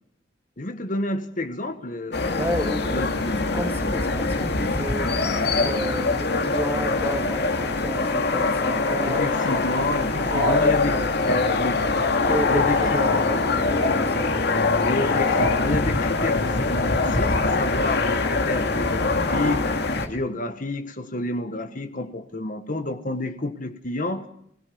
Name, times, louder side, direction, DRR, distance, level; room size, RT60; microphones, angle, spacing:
voice 1, 0.6-2.3 2.9-3.4 9.0-10.9 11.3-11.8 12.5-13.1 14.8-19.7 20.1-24.3, left 2 dB, 45° left, 1.6 m, -29 dB
sound 1, 2.1-20.1, left 3 dB, 60° left, 2.4 m, -23 dB
voice 2, 2.4-3.0 3.5-5.1 5.6-9.3 10.2-11.2 12.3-12.7 12.9-14.4, equal, 10° right, 2.0 m, -31 dB
sound 2, 8.2-20.4, equal, 85° right, 5.5 m, -40 dB
29.5 x 17.5 x 6.9 m
head